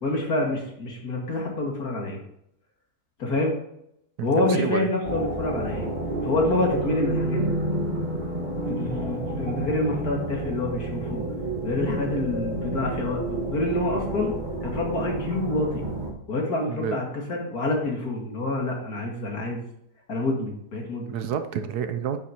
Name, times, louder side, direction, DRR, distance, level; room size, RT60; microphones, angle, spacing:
voice 1, 0.0-2.2 3.2-3.5 4.2-5.9 6.2-7.6 8.7-11.2 11.6-14.3 14.6-15.8 16.3-19.7 20.1-21.2, left 2 dB, 65° left, 0 dB, 2.5 m, -27 dB
voice 2, 4.2-4.9 16.7-17.0 21.1-22.2, right 8 dB, 75° right, 9 dB, 1.2 m, -29 dB
Dark Ambient - Pad, 5.0-16.1, right 2 dB, 30° right, 1.6 m, -29 dB
9.2 x 9.0 x 2.9 m, 0.76 s
omnidirectional pair, 1.8 m